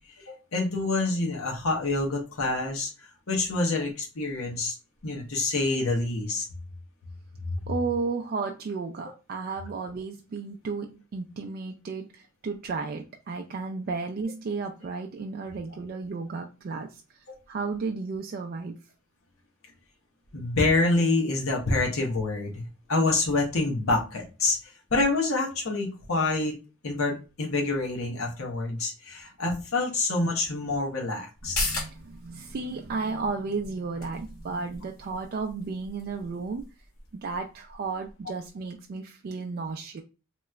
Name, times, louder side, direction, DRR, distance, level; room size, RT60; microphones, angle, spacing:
voice 1, 0.2-2.9 3.3-4.7 5.0-6.5 7.5-7.6 20.3-24.6 24.9-26.5 26.8-31.6, left 2 dB, 70° left, 0 dB, 0.8 m, -27 dB
voice 2, 7.7-17.0 17.5-18.8 31.4-36.6 37.1-40.0, right 4 dB, 45° right, 3 dB, 0.3 m, -33 dB
sound 1, 31.4-38.5 38.8-38.9, left 2 dB, 90° left, 1.5 m, -38 dB
3.2 x 2.9 x 2.3 m, 0.30 s
head